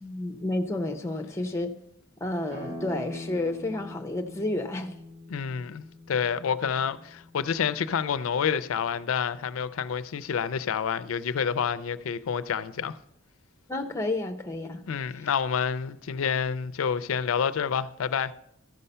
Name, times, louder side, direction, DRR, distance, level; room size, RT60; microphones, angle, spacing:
voice 1, 0.0-1.7 2.2-4.9 13.7-14.8 15.2-15.3, left 2 dB, 15° left, 0.7 m, -31 dB
sound 1, 2.5-7.9, left 1 dB, 50° right, 3.5 m, -43 dB
voice 2, 5.3-12.9 14.9-18.3, left 7 dB, 80° left, 0.4 m, -28 dB
13.5 x 5.6 x 5.5 m
head